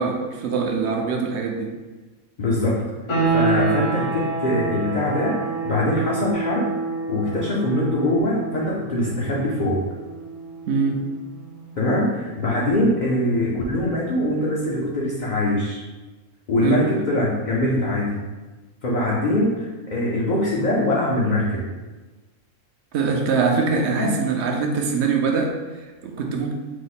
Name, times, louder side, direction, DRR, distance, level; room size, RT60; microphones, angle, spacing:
voice 1, 0.0-1.7 10.7-11.0 16.6-16.8 22.9-26.5, right 5 dB, 65° right, 2 dB, 0.8 m, -23 dB
voice 2, 2.4-2.8 3.3-6.7 7.1-9.8 11.8-15.8 16.5-18.2 18.8-21.7 23.7-24.2, left 1 dB, 50° left, -5 dB, 0.5 m, -22 dB
sound 1, 3.1-13.6, right 4 dB, 65° left, 1.5 m, -29 dB
4.8 x 2.1 x 4.0 m, 1.2 s
omnidirectional pair, 1.4 m